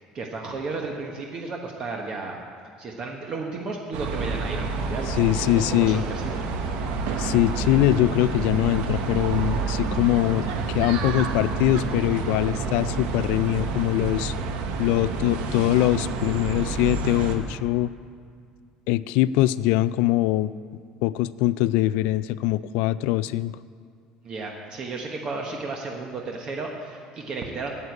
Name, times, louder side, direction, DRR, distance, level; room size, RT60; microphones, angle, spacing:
voice 1, 0.1-2.4 2.8-6.4 24.2-27.7, right 3 dB, 35° right, 1 dB, 1.1 m, -33 dB
sound 1, 3.9-17.4, right 4 dB, 80° right, 1.2 m, -28 dB
voice 2, 5.2-6.0 7.2-14.3 14.8-17.9 18.9-20.5 21.0-23.5, left 15 dB, 80° left, 17 dB, 0.3 m, -22 dB
9.6 x 8.0 x 8.4 m, 2.1 s
cardioid pair, 145°, 2 cm